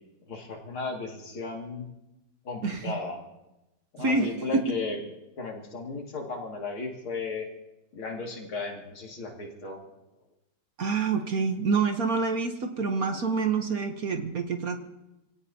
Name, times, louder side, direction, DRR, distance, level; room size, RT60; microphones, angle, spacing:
voice 1, 0.3-1.9 2.4-3.3 3.9-5.0 5.4-7.5 7.9-9.8, left 3 dB, 85° left, 0 dB, 3.2 m, -35 dB
voice 2, 10.8-14.8, right 4 dB, 50° right, 5 dB, 1.3 m, -27 dB
28.0 x 17.0 x 2.8 m, 0.97 s
omnidirectional pair, 2.2 m